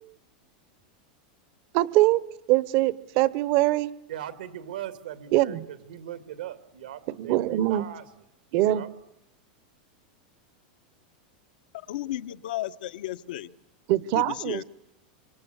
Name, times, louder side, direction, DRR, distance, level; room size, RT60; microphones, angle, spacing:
voice 1, 1.7-2.2 2.5-3.9 5.3-5.6 7.2-7.8 8.5-8.8 13.9-14.6, right 16 dB, 45° right, 19 dB, 1.0 m, -23 dB
voice 2, 4.1-8.0 8.6-8.9, right 11 dB, 85° right, 12 dB, 2.5 m, -39 dB
voice 3, 11.9-13.5 14.1-14.6, left 14 dB, 75° left, 10 dB, 1.2 m, -34 dB
26.0 x 25.0 x 8.1 m, 0.89 s
supercardioid pair, 155°, 5 cm